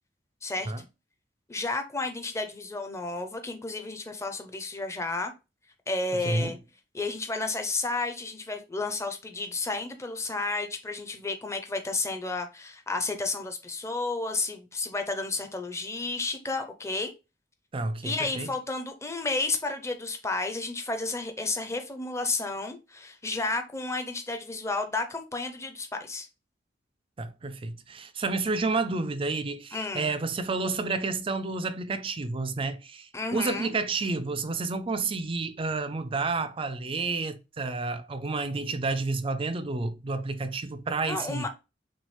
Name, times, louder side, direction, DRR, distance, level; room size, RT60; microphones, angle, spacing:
voice 1, 0.4-0.7 1.5-5.3 5.9-6.6 6.9-17.1 18.0-26.3 29.7-30.1 33.1-33.7 41.0-41.5, left 3 dB, 15° left, 0.7 m, -32 dB
voice 2, 6.2-6.6 17.7-18.5 27.2-41.5, right 3 dB, 30° right, 0.4 m, -30 dB
6.0 x 2.4 x 3.2 m
head